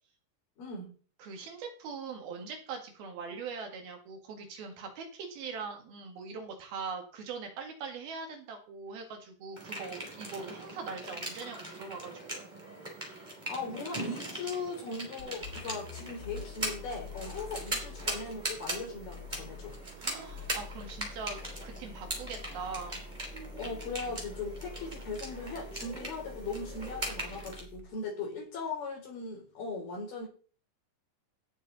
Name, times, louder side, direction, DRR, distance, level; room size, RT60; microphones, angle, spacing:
voice 1, 0.6-0.9 13.5-19.8 23.6-30.3, left 3 dB, 70° left, 0 dB, 5.8 m, -39 dB
voice 2, 1.2-12.5 20.0-21.4 21.6-23.1, right 5 dB, 70° right, 3 dB, 3.8 m, -41 dB
sound 1, 9.6-27.6, right 1 dB, 10° right, 3.3 m, -40 dB
sound 2, 15.2-27.9, left 4 dB, 45° left, 1.8 m, -47 dB
17.0 x 6.7 x 4.1 m, 0.39 s
omnidirectional pair, 4.6 m